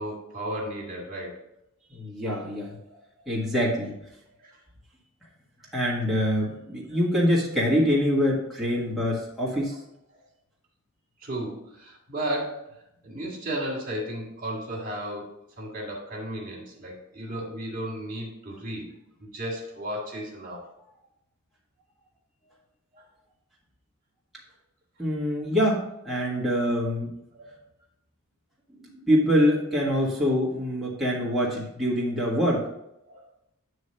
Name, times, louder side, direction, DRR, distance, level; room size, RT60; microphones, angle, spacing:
voice 1, 0.0-1.4 3.3-3.4 4.4-4.6 5.6-5.7 6.9-7.0 9.6-9.7 10.1-10.2 11.2-15.3 15.6-18.9 19.2-20.6 22.9-23.0 26.3-26.5 27.3-27.5 33.1-33.2, right 1 dB, 40° right, -1 dB, 2.0 m, -34 dB
voice 2, 1.9-2.7 3.3-3.9 5.7-9.7 25.0-27.1 29.0-32.6, equal, ahead, -6 dB, 1.6 m, -24 dB
9.2 x 3.3 x 5.5 m, 0.81 s
head